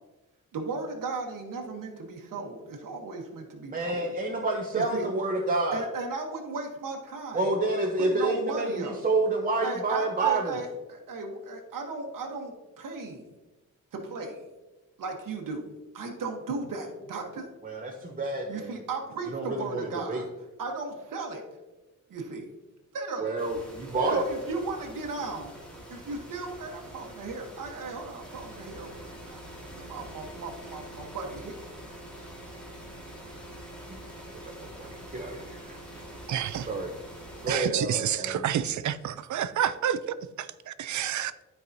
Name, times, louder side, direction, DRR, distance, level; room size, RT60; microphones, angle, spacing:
voice 1, 0.5-4.1 4.7-5.1 5.7-7.5 8.0-9.0 9.6-13.2 13.9-14.4 15.0-15.6 15.9-17.5 18.5-20.3 20.6-21.4 22.1-22.5 22.9-23.4 24.1-25.5 25.9-29.4 29.7-31.5, right 3 dB, 85° right, 2 dB, 1.1 m, -36 dB
voice 2, 3.7-5.8 7.3-10.6 17.6-18.7 19.3-20.2 23.2-24.3 34.8-36.1 36.7-36.9 37.4-38.5, right 2 dB, 25° right, 1 dB, 0.7 m, -29 dB
sound 1, 23.4-37.6, right 1 dB, 5° left, 1.7 m, -45 dB
voice 3, 36.3-36.7 37.5-40.0 40.4-41.3, right 10 dB, 65° right, 14 dB, 0.4 m, -29 dB
12.5 x 4.7 x 2.6 m, 1.1 s
wide cardioid pair, 170°, 32 cm